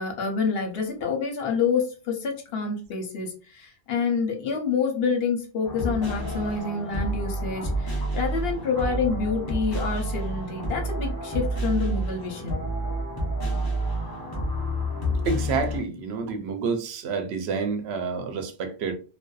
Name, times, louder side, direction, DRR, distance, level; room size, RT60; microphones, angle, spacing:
voice 1, 0.0-12.7, left 5 dB, 70° left, 0.9 m, -27 dB
sound 1, 5.6-15.8, right 1 dB, 25° left, 0.6 m, -29 dB
voice 2, 13.8-14.2 15.3-18.9, right 5 dB, 85° right, 0.8 m, -29 dB
2.5 x 2.1 x 2.2 m
omnidirectional pair, 1.1 m